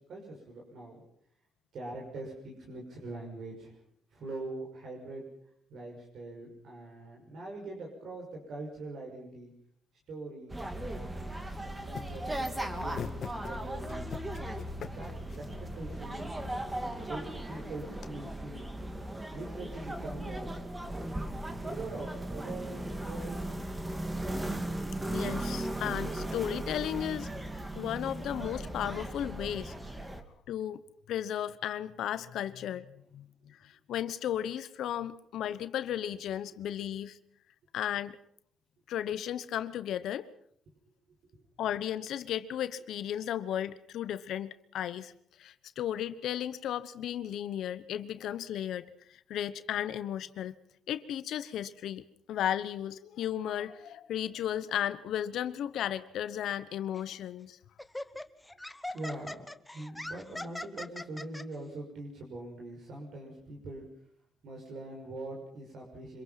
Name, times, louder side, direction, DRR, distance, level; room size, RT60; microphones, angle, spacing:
voice 1, 0.1-1.0 1.7-3.8 4.1-5.3 5.7-9.5 10.1-14.1 14.8-18.7 19.3-20.6 21.5-23.7 41.3-41.4 58.9-63.9 64.4-66.2, right 2 dB, 65° right, 0 dB, 5.9 m, -43 dB
sound 1, 10.5-30.2, right 1 dB, 15° right, 2.6 m, -37 dB
sound 2, 11.4-18.1, left 7 dB, 60° left, 1.6 m, -47 dB
voice 2, 25.1-27.3 27.8-29.7 30.0-30.1 30.5-30.8 31.1-37.2 37.7-38.2 38.9-40.3 41.6-45.1 45.4-50.5 50.9-57.6, left 10 dB, 75° left, 14 dB, 1.1 m, -35 dB
Laughter, 56.9-57.2 57.8-61.4, left 1 dB, 10° left, 1.0 m, -41 dB
25.5 x 22.0 x 5.9 m, 0.69 s
cardioid pair, 90°, 0 cm